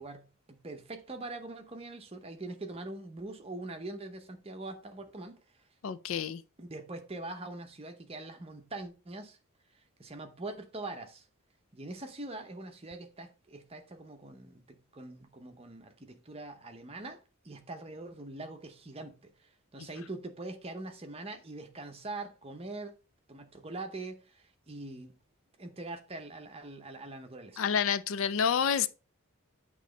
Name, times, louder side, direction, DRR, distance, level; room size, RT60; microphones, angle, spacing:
voice 1, 0.0-5.4 6.6-9.4 10.0-11.3 11.7-17.2 17.4-22.9 23.3-25.2 25.6-27.6, right 2 dB, 25° right, 0.7 m, -43 dB
voice 2, 5.8-6.4 27.6-28.9, left 7 dB, 65° left, 0.4 m, -28 dB
8.3 x 3.1 x 3.9 m
head